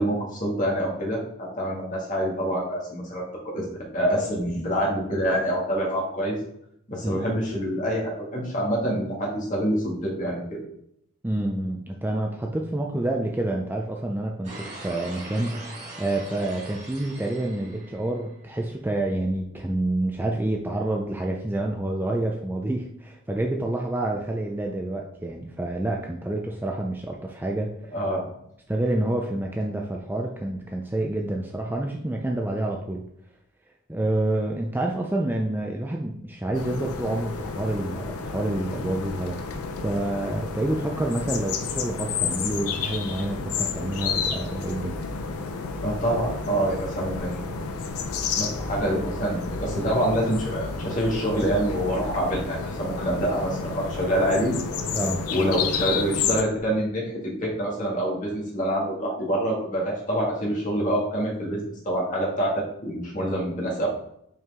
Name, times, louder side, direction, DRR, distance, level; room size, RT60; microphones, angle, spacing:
voice 1, 0.0-3.6 3.9-6.4 6.9-10.6 27.9-28.2 45.8-47.4 48.4-54.5 55.3-63.9, right 1 dB, 35° left, -4 dB, 2.1 m, -26 dB
voice 2, 11.2-27.7 28.7-33.1 33.9-39.4 39.8-45.0 45.3-45.4 54.9-55.2, right 1 dB, 10° right, 1 dB, 0.4 m, -28 dB
sound 1, 14.4-18.6, right 2 dB, 35° right, 2.2 m, -41 dB
sound 2, 36.5-56.4, left 5 dB, 90° left, 0.6 m, -31 dB
5.7 x 4.6 x 3.6 m, 0.75 s
head